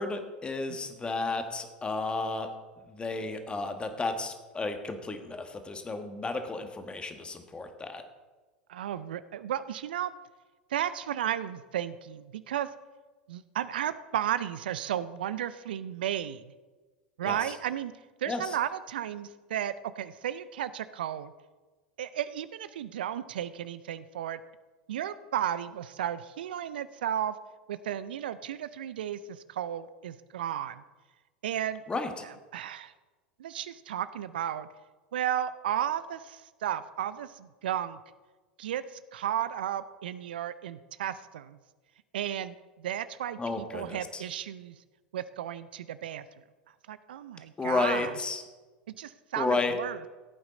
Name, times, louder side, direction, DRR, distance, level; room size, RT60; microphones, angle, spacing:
voice 1, 0.0-2.5 2.9-8.0 17.2-17.4 18.3-18.4 31.9-32.1 43.4-44.2 47.6-48.4 49.4-49.7, left 3 dB, 20° left, 7 dB, 1.4 m, -32 dB
voice 2, 8.7-10.1 10.7-12.7 13.3-16.4 17.2-17.9 18.2-21.3 22.0-24.4 24.9-27.3 27.7-30.8 31.4-31.8 32.2-32.9 33.4-34.7 35.1-38.0 38.6-41.6 42.1-44.8 45.1-46.2 46.9-48.2 49.0-50.1, right 10 dB, 70° right, 15 dB, 0.4 m, -34 dB
15.0 x 8.8 x 4.1 m, 1.3 s
figure-of-eight pair, 85°, 5 cm